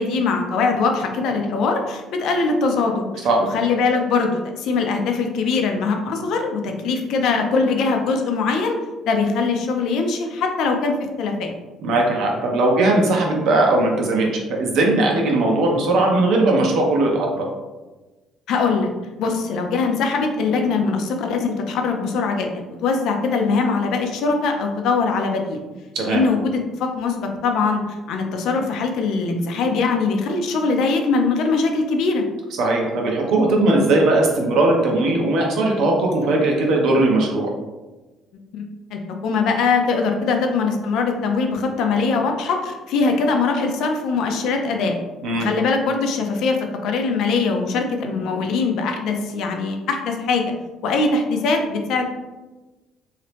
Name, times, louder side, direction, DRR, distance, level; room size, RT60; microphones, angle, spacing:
voice 1, 0.0-3.2 3.5-8.8 9.0-11.5 18.5-18.9 19.2-25.6 26.0-27.8 28.1-32.2 38.5-45.0 45.4-50.4 50.8-52.1, left 4 dB, 70° left, 3 dB, 0.5 m, -22 dB
voice 2, 11.8-17.5 25.9-26.2 32.6-37.5 45.2-45.5, right 2 dB, 70° right, 0 dB, 0.8 m, -19 dB
3.0 x 2.8 x 3.3 m, 1.2 s
cardioid pair, 135°, 0 cm